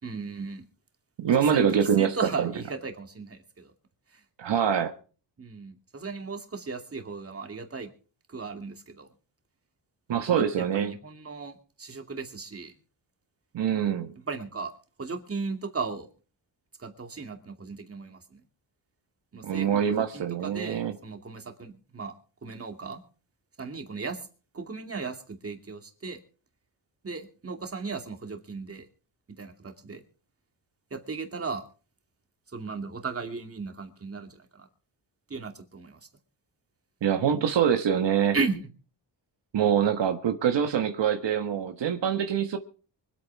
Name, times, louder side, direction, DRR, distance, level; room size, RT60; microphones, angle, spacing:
voice 1, 0.0-0.6 1.3-1.7 2.0-3.7 5.4-7.9 8.3-9.1 10.1-12.7 14.3-14.7 15.0-16.1 16.8-18.2 19.3-22.1 22.4-23.0 23.6-24.2 24.5-26.2 27.0-28.9 29.3-30.0 30.9-31.6 32.5-34.7 35.3-36.0 38.3-38.7, right 4 dB, 30° right, 2.5 m, -36 dB
voice 2, 1.2-2.5 4.4-4.9 10.1-10.9 13.5-14.1 19.4-20.9 37.0-38.4 39.5-42.6, right 8 dB, 70° right, 1.4 m, -25 dB
24.5 x 8.8 x 4.7 m
wide cardioid pair, 125°, 44 cm